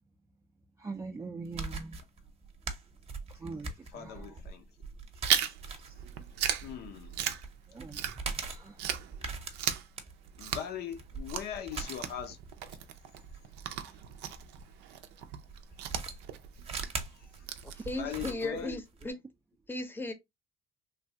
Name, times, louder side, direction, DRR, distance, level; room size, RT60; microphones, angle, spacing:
voice 1, 0.8-2.0 3.3-4.4 7.7-9.0, right 3 dB, 15° right, 0.3 m, -43 dB
sound 1, 1.4-14.6 15.5-19.1, right 4 dB, 35° right, 0.7 m, -42 dB
voice 2, 3.9-4.6 6.6-7.3 10.4-12.4 17.2-17.3 17.9-18.8, left 9 dB, 75° left, 0.6 m, -40 dB
Chewing mastication, 5.2-8.5 8.8-18.2, right 9 dB, 85° right, 0.4 m, -36 dB
voice 3, 17.8-19.2 19.7-20.1, left 2 dB, 10° left, 0.7 m, -36 dB
3.2 x 2.2 x 2.7 m
cardioid pair, 110°, 17 cm